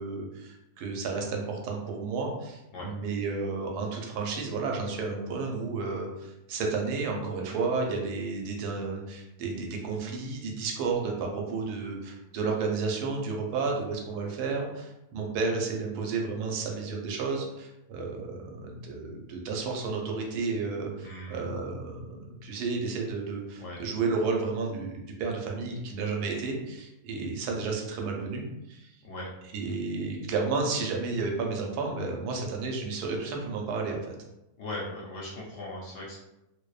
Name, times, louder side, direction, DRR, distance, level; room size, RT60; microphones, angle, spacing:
voice 1, 0.0-24.9 25.2-28.9 29.5-34.1, right 4 dB, 90° right, 1 dB, 1.1 m, -32 dB
voice 2, 21.0-21.5 23.6-23.8 29.0-29.3 34.6-36.2, left 1 dB, 65° left, -5 dB, 0.9 m, -39 dB
2.6 x 2.0 x 2.3 m, 0.93 s
omnidirectional pair, 1.7 m